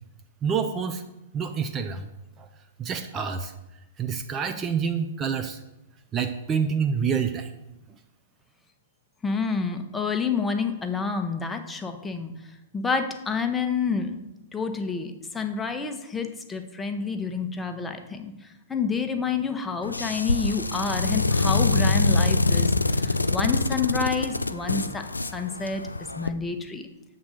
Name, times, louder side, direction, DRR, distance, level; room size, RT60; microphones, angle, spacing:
voice 1, 0.4-1.0 1.3-2.1 2.4-2.5 2.8-3.5 4.0-5.6 6.1-7.5, right 6 dB, 25° right, 7 dB, 0.5 m, -27 dB
voice 2, 9.2-14.2 14.5-25.0 25.3-26.8, left 5 dB, 10° left, 6 dB, 0.8 m, -29 dB
sound 1, 19.8-26.3, left 2 dB, 90° left, 0.3 m, -24 dB
7.2 x 3.8 x 6.2 m, 0.93 s
figure-of-eight pair, 110°, 0 cm